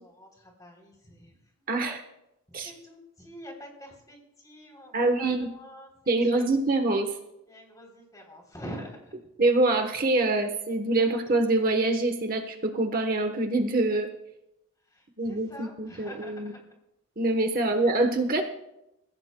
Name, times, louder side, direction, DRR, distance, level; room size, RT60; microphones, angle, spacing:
voice 1, 0.0-1.7 2.5-6.4 7.5-9.1 14.9-16.6 17.5-17.7, equal, 15° left, 0 dB, 3.3 m, -46 dB
voice 2, 1.7-2.0 2.5-2.7 4.9-5.5 6.1-7.2 9.4-14.1 15.2-16.5 17.2-18.4, right 2 dB, 40° right, 5 dB, 1.0 m, -25 dB
28.0 x 16.0 x 2.2 m, 0.87 s
head